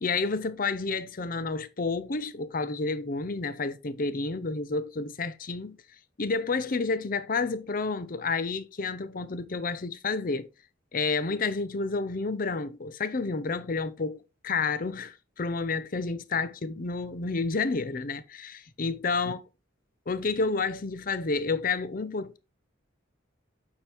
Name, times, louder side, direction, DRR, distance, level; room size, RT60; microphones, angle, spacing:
voice 1, 0.0-5.8 6.2-10.5 10.9-19.4 20.1-22.4, left 4 dB, 45° left, 0.6 m, -30 dB
8.6 x 4.5 x 3.4 m
head